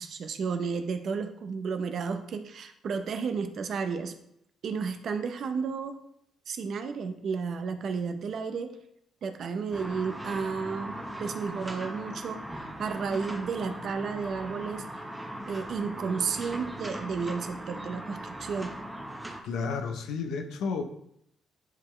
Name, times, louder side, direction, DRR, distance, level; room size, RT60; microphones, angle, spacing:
voice 1, 0.0-4.1 4.6-6.0 6.5-8.8 9.2-14.9 15.5-18.7, right 5 dB, 60° right, 7 dB, 0.7 m, -32 dB
sound 1, 9.7-19.4, right 1 dB, 10° right, 1.0 m, -39 dB
voice 2, 19.4-20.8, left 5 dB, 80° left, 6 dB, 0.8 m, -31 dB
10.5 x 3.7 x 3.3 m, 0.74 s
cardioid pair, 90°, 0 cm